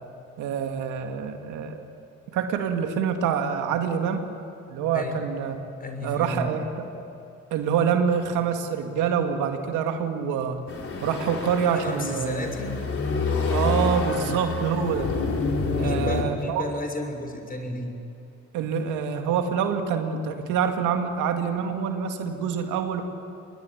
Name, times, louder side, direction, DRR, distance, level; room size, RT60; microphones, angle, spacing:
voice 1, 0.4-1.8 2.3-4.2 4.7-5.6 6.0-6.9 7.5-10.6 11.0-12.5 13.5-15.1 15.8-16.6 18.5-23.0, right 7 dB, 85° right, 5 dB, 2.2 m, -26 dB
voice 2, 5.8-6.5 11.7-12.7 15.7-17.9, left 1 dB, 30° left, 4 dB, 6.2 m, -32 dB
sound 1, 10.7-16.2, left 3 dB, 45° left, 4.2 m, -28 dB
25.5 x 21.0 x 9.9 m, 2.7 s
supercardioid pair, 70°, 30 cm